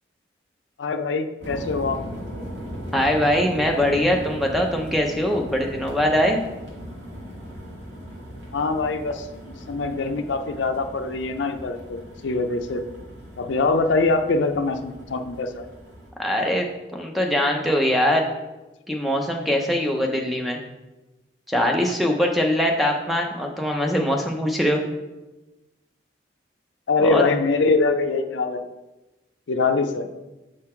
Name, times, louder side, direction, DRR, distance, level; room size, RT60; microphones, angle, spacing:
voice 1, 0.8-2.0 8.5-12.8 13.4-15.7 26.9-28.6 29.5-30.1, left 3 dB, 85° left, 8 dB, 0.5 m, -23 dB
sound 1, 1.4-16.1, equal, 90° right, 1.9 m, -38 dB
voice 2, 2.9-6.4 16.2-16.7 16.9-18.3 18.9-20.6 21.5-24.8 27.0-27.2, equal, ahead, 1 dB, 0.5 m, -22 dB
6.4 x 3.9 x 4.3 m, 1.1 s
head